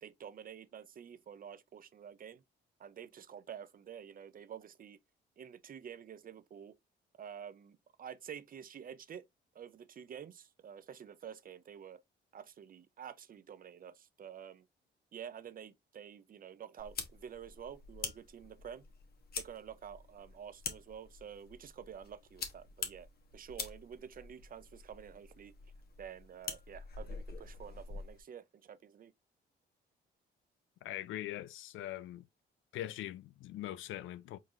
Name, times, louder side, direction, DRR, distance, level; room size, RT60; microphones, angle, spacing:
voice 1, 0.0-2.4 2.8-5.0 5.4-6.7 7.2-9.2 9.5-12.0 12.3-14.7 15.1-18.9 19.4-23.1 23.3-25.7 26.0-29.1, right 8 dB, 45° right, 0.6 m, -49 dB
sound 1, 16.8-28.2, left 5 dB, 50° left, 1.2 m, -46 dB
voice 2, 30.8-32.3 32.7-34.4, left 14 dB, 80° left, 0.4 m, -42 dB
4.6 x 3.8 x 2.5 m
cardioid pair, 90°, 20 cm